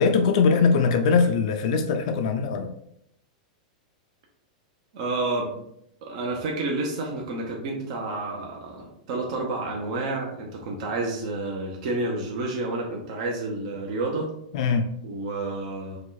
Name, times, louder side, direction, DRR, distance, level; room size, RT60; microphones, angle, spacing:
voice 1, 0.0-2.7 14.5-14.9, left 5 dB, 55° left, 6 dB, 0.4 m, -21 dB
voice 2, 4.9-5.6 6.0-14.3 15.0-16.0, right 2 dB, 50° right, -1 dB, 0.9 m, -30 dB
4.8 x 2.4 x 4.0 m, 0.74 s
supercardioid pair, 155°, 4 cm